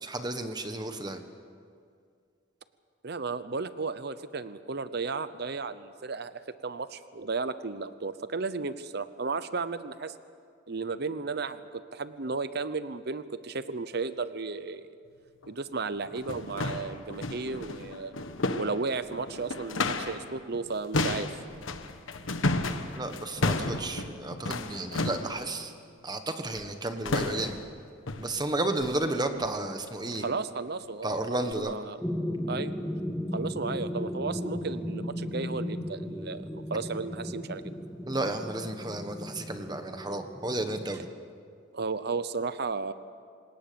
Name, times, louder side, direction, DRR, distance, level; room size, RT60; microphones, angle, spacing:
voice 1, 0.0-1.2 22.9-25.7 26.0-27.6 28.2-30.2 31.0-31.7 38.1-41.1, right 2 dB, 20° right, 7 dB, 1.4 m, -32 dB
voice 2, 3.0-10.1 10.7-14.8 15.5-18.1 18.6-21.3 30.2-32.0 32.5-32.7 33.3-37.7 41.7-42.9, right 4 dB, 55° right, 13 dB, 0.8 m, -34 dB
sound 1, 15.4-15.5 16.1-20.3 20.5-25.4 26.5-26.8 27.1-27.7 28.1-28.4 28.8-29.0 29.4-29.6 30.1-30.3 30.8-30.9 31.5-31.6, left 2 dB, 90° left, 1.3 m, -32 dB
sound 2, 32.0-41.1, left 1 dB, 5° left, 0.8 m, -36 dB
27.0 x 18.0 x 7.0 m, 2.2 s
head